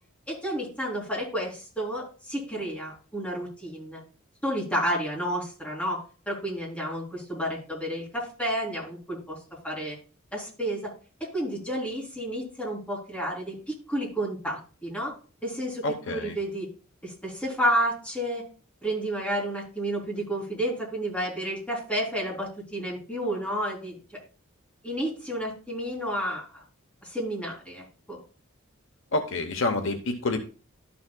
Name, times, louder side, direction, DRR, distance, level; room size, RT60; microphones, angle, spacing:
voice 1, 0.3-4.0 4.4-6.0 6.2-9.4 9.6-10.0 10.3-10.9 11.2-15.1 15.4-16.7 17.0-18.4 18.8-24.0 24.8-26.6 27.0-28.2, equal, 5° left, -3 dB, 3.3 m, -31 dB
voice 2, 15.8-16.4 29.1-30.4, left 2 dB, 60° left, 7 dB, 0.9 m, -28 dB
12.5 x 7.0 x 2.2 m, 0.36 s
head